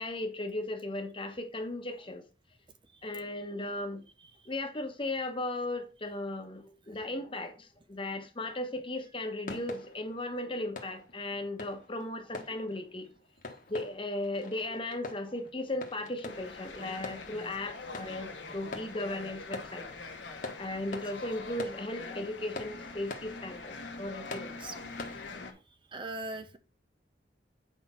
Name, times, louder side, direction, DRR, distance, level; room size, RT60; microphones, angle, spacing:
voice 1, 0.0-2.2 3.0-4.0 4.5-13.1 13.7-19.9 20.6-24.6, left 1 dB, 30° left, 1.2 m, -36 dB
sound 1, 9.4-25.4, left 3 dB, 50° left, 1.4 m, -46 dB
sound 2, 16.3-25.5, left 3 dB, 70° left, 1.5 m, -44 dB
voice 2, 25.9-26.6, right 2 dB, 30° right, 0.6 m, -40 dB
8.2 x 5.1 x 4.3 m
head